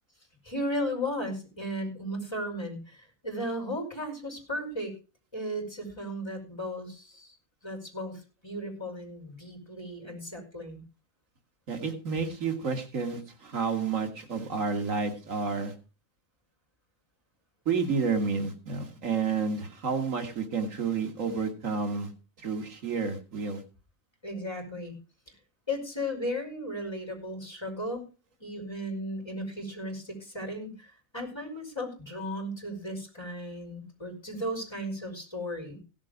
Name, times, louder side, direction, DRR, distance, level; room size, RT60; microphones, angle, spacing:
voice 1, 0.4-4.9 5.3-7.3 7.6-10.8 24.2-24.9 25.3-25.4 25.7-28.0 28.4-35.8, equal, 20° left, -1 dB, 5.1 m, -35 dB
voice 2, 11.7-15.7 17.7-22.1 22.4-23.6, right 5 dB, 90° right, 5 dB, 2.2 m, -30 dB
16.5 x 7.4 x 5.1 m, 0.33 s
omnidirectional pair, 1.3 m